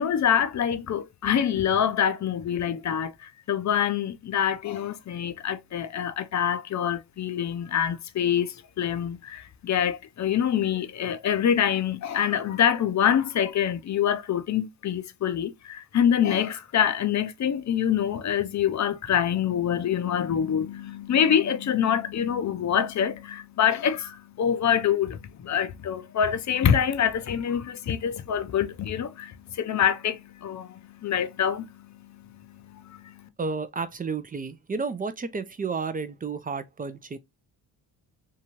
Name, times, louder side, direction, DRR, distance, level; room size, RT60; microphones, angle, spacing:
voice 1, 0.0-33.3, left 9 dB, 40° left, 0.5 m, -26 dB
voice 2, 33.4-37.2, right 4 dB, 20° right, 0.4 m, -31 dB
2.8 x 2.3 x 2.9 m
supercardioid pair, 60°, 44 cm